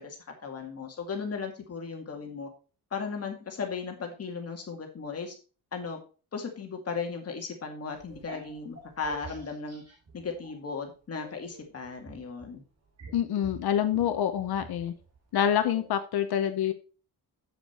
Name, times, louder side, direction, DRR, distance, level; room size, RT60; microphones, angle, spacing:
voice 1, 0.0-2.5 2.9-5.4 5.7-6.0 6.3-9.8 10.1-12.6, left 5 dB, 40° left, 3 dB, 2.1 m, -36 dB
sound 1, 7.9-10.8 11.2-16.0, right 3 dB, 45° right, 2.7 m, -48 dB
voice 2, 13.1-14.9 15.3-16.7, left 10 dB, 90° left, 9 dB, 0.9 m, -26 dB
7.7 x 7.1 x 4.3 m, 0.35 s
wide cardioid pair, 155°, 37 cm